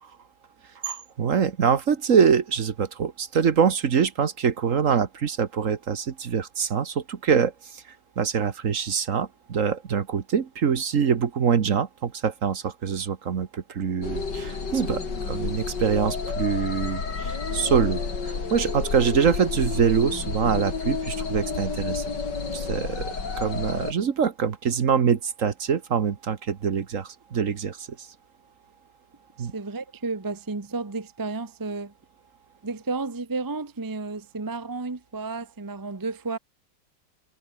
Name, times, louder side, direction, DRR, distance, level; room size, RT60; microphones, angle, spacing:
voice 1, 0.8-7.8 8.2-22.0 22.5-27.9 29.4-29.5, right 7 dB, 50° right, 1.5 m, -24 dB
sound 1, 14.0-23.9, left 4 dB, 90° left, 3.7 m, -30 dB
voice 2, 29.4-31.9 32.6-36.4, right 3 dB, 15° right, 0.7 m, -32 dB
omnidirectional pair, 1.8 m